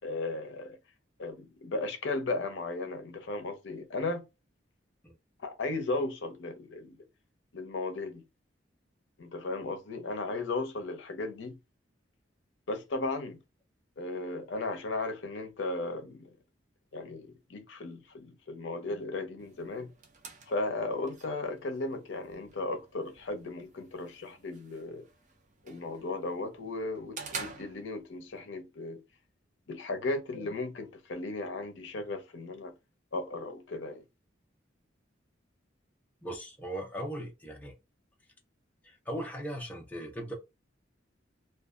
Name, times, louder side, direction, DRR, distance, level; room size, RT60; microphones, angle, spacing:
voice 1, 0.0-0.8 1.2-4.3 5.4-7.0 7.5-8.2 9.2-11.6 12.7-13.4 14.0-16.3 16.9-19.9 20.5-25.0 25.6-29.0 29.7-32.7 33.1-34.0, left 2 dB, 75° left, 0.6 m, -35 dB
sound 1, 19.4-28.4, right 4 dB, 40° right, 0.6 m, -48 dB
voice 2, 36.2-37.7 38.8-40.3, right 1 dB, 10° left, 0.7 m, -38 dB
2.5 x 2.3 x 2.4 m
head